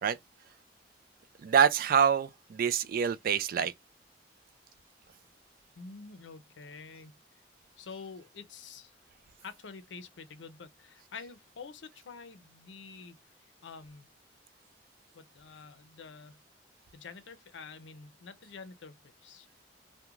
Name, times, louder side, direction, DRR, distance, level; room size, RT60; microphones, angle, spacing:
voice 1, 1.4-3.7, right 7 dB, 50° right, 0.3 m, -26 dB
voice 2, 5.8-7.1 7.8-8.9 9.4-13.2 13.6-14.1 15.1-16.4 16.9-19.0 19.2-19.5, left 5 dB, 80° left, 0.5 m, -47 dB
2.4 x 2.1 x 2.9 m
head